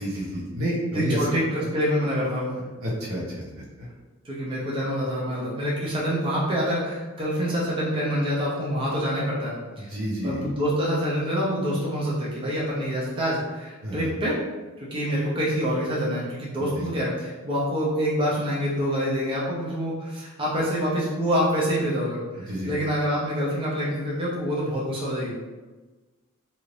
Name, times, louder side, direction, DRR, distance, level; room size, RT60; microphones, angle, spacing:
voice 1, 0.0-1.7 2.8-3.2 3.8-3.9 9.8-10.4 13.8-14.1 16.6-16.8 22.5-22.7, equal, 75° right, -5 dB, 0.9 m, -29 dB
voice 2, 0.9-2.6 4.2-9.9 10.2-14.4 14.8-25.3, equal, 25° right, -7 dB, 0.6 m, -26 dB
2.7 x 2.5 x 3.2 m, 1.3 s
head